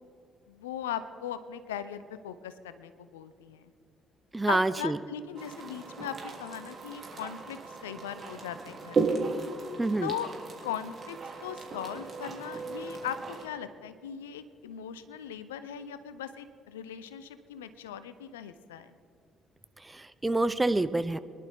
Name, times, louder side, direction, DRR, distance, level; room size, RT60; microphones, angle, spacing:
voice 1, 0.5-3.7 4.5-9.3 10.0-10.3 10.6-11.2 11.4-18.9, left 9 dB, 80° left, 13 dB, 0.5 m, -39 dB
voice 2, 4.3-5.0 9.8-10.1 19.9-21.2, right 2 dB, 15° right, 14 dB, 0.7 m, -27 dB
sound 1, 5.3-13.4, right 4 dB, 45° right, 2.9 m, -36 dB
24.5 x 11.0 x 3.6 m, 2.3 s
figure-of-eight pair, 45°, 0 cm